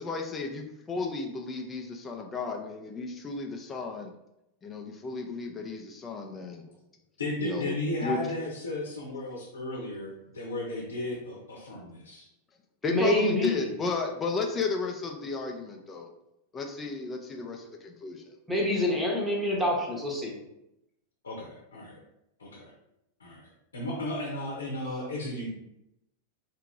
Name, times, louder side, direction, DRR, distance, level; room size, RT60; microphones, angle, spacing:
voice 1, 0.0-4.1 4.6-6.7 7.4-8.2 12.8-16.1 16.5-18.4, left 4 dB, 20° left, 2 dB, 0.6 m, -34 dB
voice 2, 7.2-12.3 21.2-22.0 22.4-22.7 23.2-23.4 23.7-25.5, left 1 dB, 75° left, -2 dB, 1.0 m, -34 dB
voice 3, 12.8-13.6 18.5-20.4, left 1 dB, 5° right, -2 dB, 1.0 m, -26 dB
4.6 x 2.8 x 3.8 m, 0.85 s
figure-of-eight pair, 90°, 0 cm